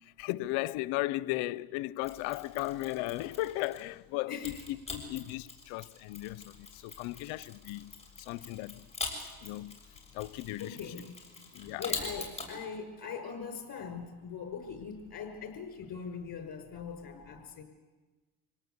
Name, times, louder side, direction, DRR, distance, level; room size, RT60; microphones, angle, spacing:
voice 1, 0.2-8.9 9.4-9.8 10.1-11.1 11.5-11.8, left 18 dB, 85° left, 0.8 m, -36 dB
Mechanisms, 2.0-3.9 4.4-12.5, left 4 dB, 15° left, 6.9 m, -43 dB
voice 2, 4.3-4.6 10.6-11.1 11.8-17.6, left 6 dB, 50° left, 5.5 m, -41 dB
26.0 x 18.0 x 8.2 m
cardioid pair, 90°, 45 cm